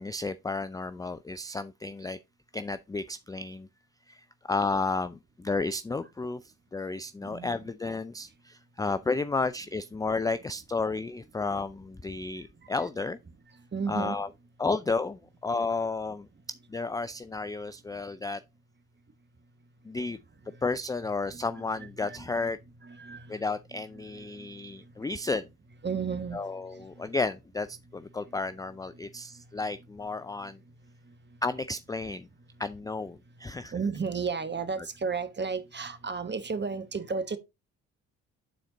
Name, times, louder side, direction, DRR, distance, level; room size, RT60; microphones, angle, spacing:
voice 1, 0.0-2.2 2.5-3.7 4.1-6.4 6.7-13.2 13.9-14.3 14.6-16.3 16.7-18.4 19.9-20.2 20.6-22.6 23.3-25.5 26.3-30.6 31.4-32.3 32.6-33.7, left 3 dB, 10° left, 0.4 m, -32 dB
voice 2, 7.2-7.6 13.7-14.2 20.0-20.1 21.3-22.5 22.8-23.4 23.7-24.5 25.8-26.4 26.8-26.9 33.7-37.4, right 5 dB, 25° right, 1.3 m, -34 dB
9.3 x 4.2 x 3.9 m
hypercardioid pair, 45°, 40 cm